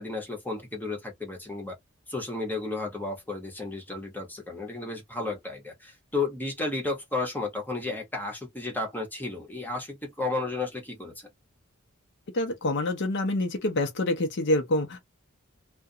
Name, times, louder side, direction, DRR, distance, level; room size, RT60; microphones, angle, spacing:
voice 1, 0.0-1.8 2.1-11.3, left 3 dB, 10° left, 1.0 m, -33 dB
voice 2, 12.3-15.0, left 1 dB, 55° left, 0.6 m, -26 dB
2.4 x 2.2 x 2.6 m
head